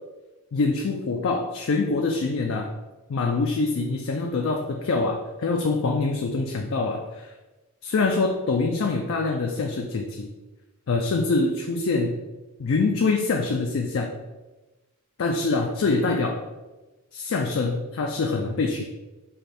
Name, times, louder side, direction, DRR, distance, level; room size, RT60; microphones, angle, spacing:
voice 1, 0.5-2.7 3.1-7.3 7.8-10.3 10.9-12.2 12.6-14.1 15.2-16.4 17.1-18.9, left 3 dB, 60° left, 2 dB, 0.4 m, -25 dB
5.0 x 2.3 x 4.2 m, 1.1 s
head